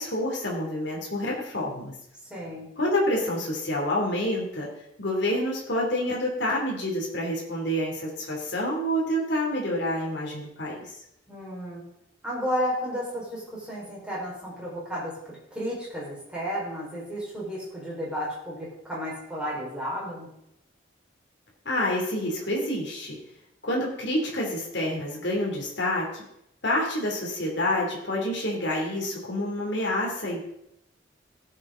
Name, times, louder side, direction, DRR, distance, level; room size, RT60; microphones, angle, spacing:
voice 1, 0.0-1.9 2.8-4.7 5.0-10.9 21.6-23.2 23.6-26.2 26.6-30.4, left 1 dB, 65° left, -2 dB, 2.9 m, -28 dB
voice 2, 2.3-2.7 11.3-11.8 12.2-15.2 15.5-20.3, equal, 5° right, -6 dB, 4.6 m, -32 dB
16.0 x 7.4 x 3.8 m, 0.79 s
head